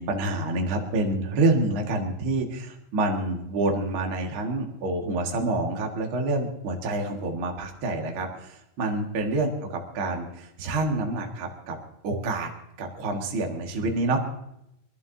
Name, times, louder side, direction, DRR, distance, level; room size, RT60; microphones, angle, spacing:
voice 1, 0.0-11.8 12.0-12.5 12.8-14.2, right 2 dB, 60° right, 1 dB, 1.3 m, -27 dB
27.0 x 11.5 x 2.8 m, 0.79 s
omnidirectional pair, 5.7 m